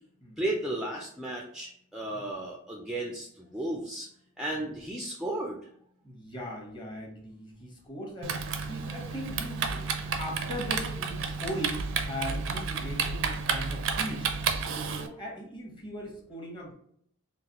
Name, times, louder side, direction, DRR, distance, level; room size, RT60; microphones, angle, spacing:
voice 1, 0.4-4.1 4.4-5.6, right 1 dB, 5° right, -2 dB, 0.4 m, -34 dB
voice 2, 6.0-14.4 14.8-16.7, equal, 20° left, -1 dB, 1.0 m, -39 dB
Typing, 8.2-15.1, right 5 dB, 60° right, 0.5 m, -31 dB
4.0 x 2.4 x 2.9 m, 0.67 s
head